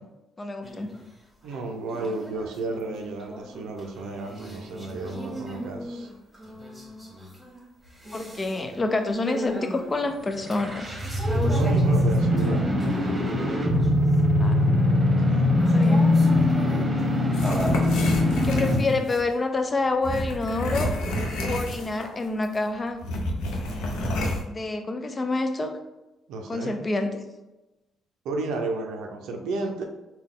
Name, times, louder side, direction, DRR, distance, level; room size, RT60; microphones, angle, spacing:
voice 1, 0.4-0.9 8.1-10.9 14.4-14.6 15.7-16.1 18.4-20.9 21.4-23.0 24.5-25.7 26.5-27.1, left 3 dB, 30° left, 7 dB, 0.5 m, -27 dB
sound 1, 0.6-1.1 1.4-13.3 13.7-14.7 15.6-17.9, equal, 10° right, 1.4 m, -37 dB
voice 2, 1.4-6.1 11.4-12.7 15.2-15.4 16.5-17.0 26.3-26.8 28.2-29.8, right 3 dB, 80° right, 3 dB, 0.5 m, -33 dB
sound 2, 10.4-19.0, left 1 dB, 30° right, 1.0 m, -22 dB
sound 3, 17.3-19.2 20.0-22.2 22.4-22.6 23.0-24.4, left 1 dB, 85° left, 0.6 m, -29 dB
3.7 x 2.3 x 3.7 m, 1.0 s
supercardioid pair, 70°, 0 cm